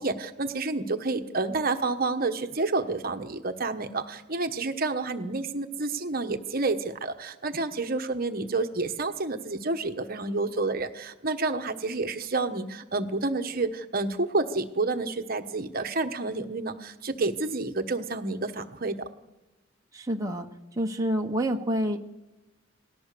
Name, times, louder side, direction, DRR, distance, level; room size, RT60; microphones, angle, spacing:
voice 1, 0.0-19.1, right 3 dB, 50° right, 7 dB, 1.2 m, -29 dB
voice 2, 19.9-20.5 20.8-22.0, equal, 15° right, 2 dB, 1.2 m, -27 dB
29.5 x 18.5 x 6.9 m, 1.1 s
head